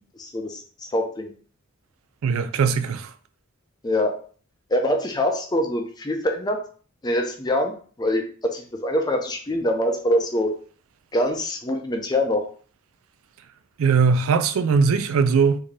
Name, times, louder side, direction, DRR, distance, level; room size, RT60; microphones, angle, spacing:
voice 1, 0.2-0.6 0.9-1.3 3.8-4.1 4.7-6.6 7.0-8.2 8.5-10.5 11.1-12.4, left 1 dB, 20° left, 0.4 m, -24 dB
voice 2, 2.2-3.1 13.8-15.6, right 5 dB, 70° right, 0.4 m, -20 dB
3.6 x 2.7 x 3.2 m
head